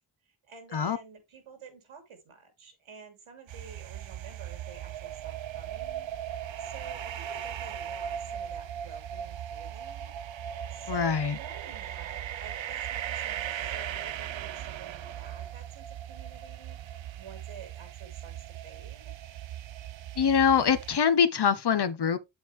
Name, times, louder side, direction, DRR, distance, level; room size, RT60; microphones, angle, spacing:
voice 1, 0.4-10.1 10.7-19.2, right 6 dB, 85° right, 3.0 m, -50 dB
sound 1, 3.5-21.0, right 10 dB, 70° right, 0.7 m, -38 dB
voice 2, 10.9-11.4 20.2-22.2, left 7 dB, 55° left, 1.1 m, -24 dB
7.8 x 7.2 x 3.3 m
cardioid pair, 60°, 48 cm